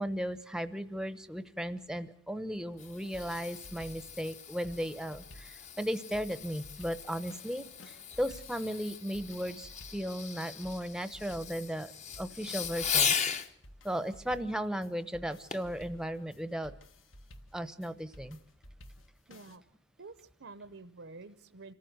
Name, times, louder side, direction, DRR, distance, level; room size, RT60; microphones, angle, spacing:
voice 1, 0.0-11.9 12.2-13.2 13.8-16.7 17.5-18.4, equal, 5° right, 12 dB, 0.8 m, -36 dB
Fireworks, 2.5-13.5 15.5-15.8 16.4-16.5, left 7 dB, 35° left, 0.9 m, -38 dB
sound 1, 2.7-19.6, left 1 dB, 75° left, 1.5 m, -54 dB
voice 2, 19.3-19.6 20.0-21.7, right 3 dB, 70° right, 11 dB, 0.8 m, -49 dB
26.5 x 14.5 x 8.0 m, 0.64 s
head